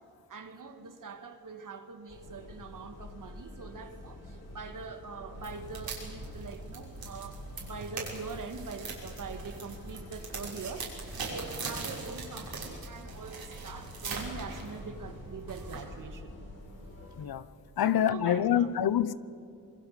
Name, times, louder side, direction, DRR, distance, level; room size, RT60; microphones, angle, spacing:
voice 1, 0.3-16.3 17.8-18.7, right 4 dB, 60° right, 2.2 m, -43 dB
sound 1, 2.1-17.3, left 1 dB, 45° left, 7.0 m, -48 dB
sound 2, 5.3-16.1, right 3 dB, 75° right, 6.1 m, -41 dB
voice 2, 17.8-19.1, left 10 dB, 90° left, 0.8 m, -26 dB
26.5 x 23.0 x 6.9 m
wide cardioid pair, 130°, 36 cm